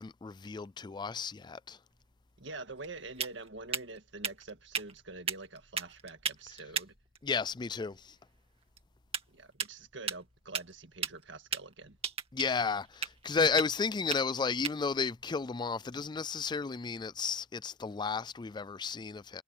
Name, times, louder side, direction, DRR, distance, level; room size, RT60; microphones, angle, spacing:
voice 1, 0.0-1.8 7.2-8.2 12.3-19.4, left 5 dB, 25° left, 0.4 m, -33 dB
sound 1, 1.9-16.6, right 6 dB, 30° right, 2.3 m, -41 dB
voice 2, 2.4-6.9 9.3-12.0, right 3 dB, 75° right, 1.8 m, -46 dB
head